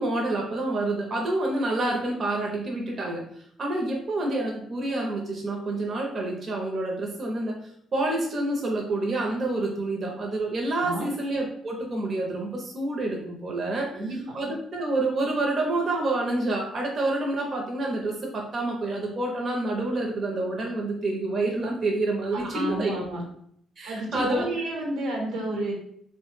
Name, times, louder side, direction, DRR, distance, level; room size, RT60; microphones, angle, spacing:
voice 1, 0.0-3.2 3.6-7.5 7.9-13.9 14.3-22.9 23.8-24.5, right 2 dB, 45° right, -1 dB, 0.7 m, -28 dB
voice 2, 13.9-14.3 22.3-23.2 23.9-25.7, right 2 dB, 90° right, -1 dB, 1.0 m, -30 dB
3.1 x 2.1 x 3.1 m, 0.68 s
cardioid pair, 90°, 0 cm